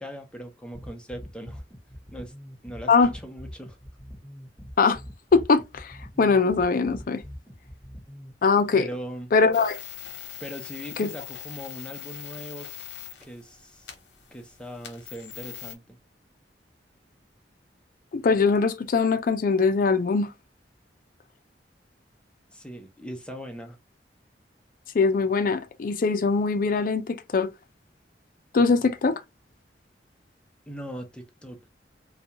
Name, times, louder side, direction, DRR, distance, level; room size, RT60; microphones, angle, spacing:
voice 1, 0.0-1.6 2.1-2.3 2.6-3.8 8.7-9.3 10.4-12.7 13.2-13.9 14.3-16.0 22.5-23.8 30.7-31.6, equal, 5° left, 0.6 m, -40 dB
sound 1, 0.7-8.3, equal, 10° right, 1.2 m, -43 dB
voice 2, 5.3-7.2 8.4-8.9 9.3-9.8 11.0-11.1 18.1-20.3 24.9-27.5 28.5-29.2, left 4 dB, 50° left, 0.4 m, -22 dB
sound 2, 9.5-15.8, left 10 dB, 85° left, 0.8 m, -42 dB
2.3 x 2.2 x 2.8 m
head